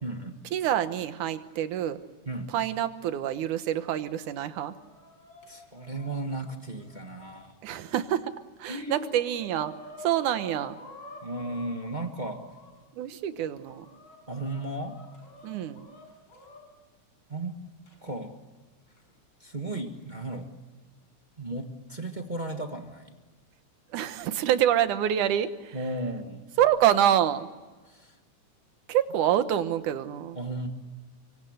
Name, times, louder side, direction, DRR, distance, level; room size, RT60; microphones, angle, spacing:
voice 1, 0.0-0.4 2.2-2.5 5.5-7.6 8.6-9.1 11.2-12.5 14.3-15.1 17.3-17.6 18.0-18.4 19.4-20.5 21.4-23.2 25.7-26.5 27.8-28.2 30.3-30.7, right 2 dB, 30° right, 4 dB, 0.8 m, -35 dB
voice 2, 0.5-2.0 2.5-4.7 7.6-8.3 8.6-9.7 10.0-10.8 12.9-13.9 15.4-15.9 23.9-25.8 26.6-27.5 28.9-30.4, right 11 dB, 80° right, 11 dB, 2.6 m, -26 dB
Chicken rooster, 4.3-7.8 8.3-8.4 8.7-12.7 13.3-16.6 17.9-18.0 19.0-19.1 20.0-20.4, left 1 dB, 35° left, 6.7 m, -50 dB
25.0 x 24.5 x 8.0 m, 1.3 s
omnidirectional pair, 3.5 m